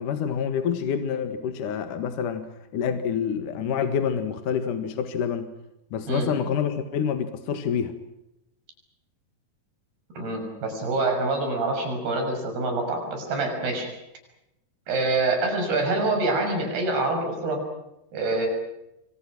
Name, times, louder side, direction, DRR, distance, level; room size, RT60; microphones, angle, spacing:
voice 1, 0.0-5.5 5.9-7.9, left 7 dB, 60° left, 8 dB, 3.0 m, -27 dB
voice 2, 10.2-13.9 14.9-17.6 18.1-18.5, right 2 dB, 80° right, 4 dB, 8.2 m, -26 dB
27.0 x 26.5 x 6.1 m, 0.88 s
omnidirectional pair, 4.5 m